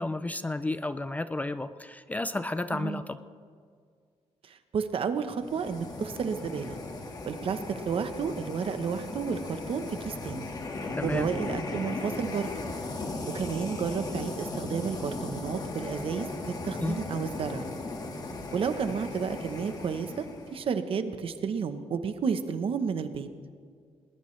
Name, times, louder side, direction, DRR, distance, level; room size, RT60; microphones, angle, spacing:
voice 1, 0.0-3.2 11.0-11.3 16.8-17.2, left 2 dB, 15° left, 12 dB, 0.4 m, -32 dB
voice 2, 2.7-3.0 4.5-6.8 7.2-10.5 11.0-12.5 13.3-17.7 18.5-20.3 20.5-23.3, right 6 dB, 55° right, 9 dB, 0.9 m, -31 dB
sound 1, 5.3-20.7, left 2 dB, 35° left, 1.7 m, -37 dB
20.5 x 20.0 x 3.2 m, 2.1 s
wide cardioid pair, 175°, 11 cm